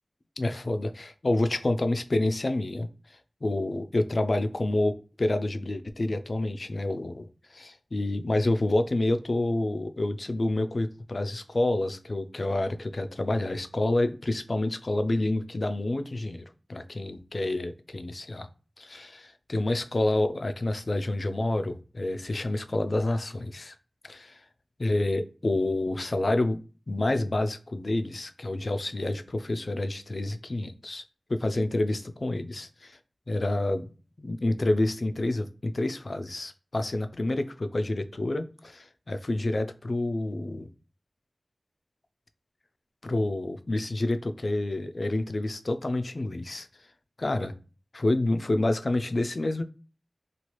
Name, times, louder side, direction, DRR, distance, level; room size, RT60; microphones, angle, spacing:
voice 1, 0.4-2.9 3.4-4.9 5.2-7.2 7.5-16.4 16.7-18.5 18.8-23.7 24.0-24.4 24.8-26.6 26.9-31.0 31.3-33.0 33.3-33.9 34.2-40.7 43.0-46.7 47.2-47.5 47.9-49.6, left 2 dB, 60° left, 9 dB, 0.3 m, -28 dB
3.0 x 2.3 x 3.0 m, 0.36 s
wide cardioid pair, 75°, 0 cm